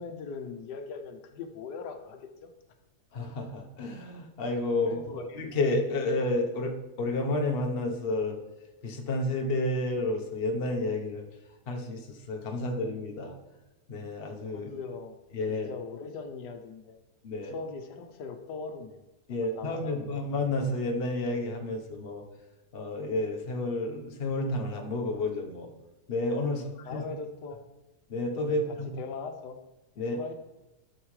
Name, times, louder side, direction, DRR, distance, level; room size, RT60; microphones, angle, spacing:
voice 1, 0.0-2.5 4.8-5.3 14.5-15.2 15.5-17.0 17.4-19.0 19.3-20.1 26.4-27.7 28.4-29.6 30.0-30.3, left 5 dB, 85° left, 6 dB, 1.4 m, -40 dB
voice 2, 3.1-5.0 5.3-8.4 8.8-11.2 11.7-13.4 13.9-14.7 15.3-15.7 17.2-17.5 19.3-22.2 22.7-25.7 26.1-27.0 28.1-28.9 30.0-30.2, left 2 dB, 40° left, 2 dB, 1.1 m, -30 dB
12.0 x 6.6 x 3.2 m, 1.0 s
omnidirectional pair, 1.7 m